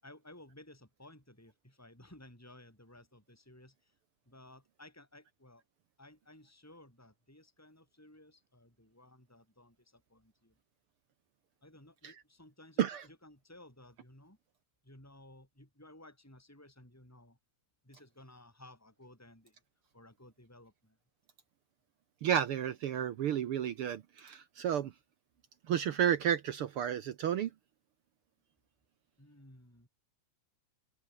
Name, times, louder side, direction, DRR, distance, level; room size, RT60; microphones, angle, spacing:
voice 1, 0.0-3.9 4.3-5.6 6.0-10.6 11.6-14.4 14.8-17.4 17.8-19.6 19.9-21.0 29.2-29.9, left 1 dB, 5° left, 7.0 m, -57 dB
voice 2, 22.2-24.9 25.7-27.5, right 9 dB, 70° right, 1.3 m, -31 dB
open air
omnidirectional pair, 3.7 m